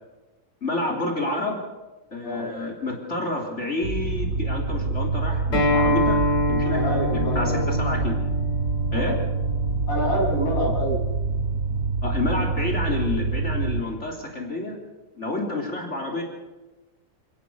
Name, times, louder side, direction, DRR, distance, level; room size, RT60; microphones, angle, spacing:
voice 1, 0.6-1.6 2.1-6.2 6.5-8.2 8.9-9.1 12.0-14.8 15.2-16.2, left 2 dB, 35° left, 2 dB, 3.7 m, -29 dB
sound 1, 3.8-13.8, right 3 dB, 50° right, 2.4 m, -26 dB
Acoustic guitar, 5.5-10.7, left 1 dB, 65° left, 7.9 m, -26 dB
voice 2, 6.6-7.7 8.9-9.2 9.9-11.0, equal, 90° left, -2 dB, 8.0 m, -27 dB
29.0 x 17.5 x 6.9 m, 1.2 s
omnidirectional pair, 2.0 m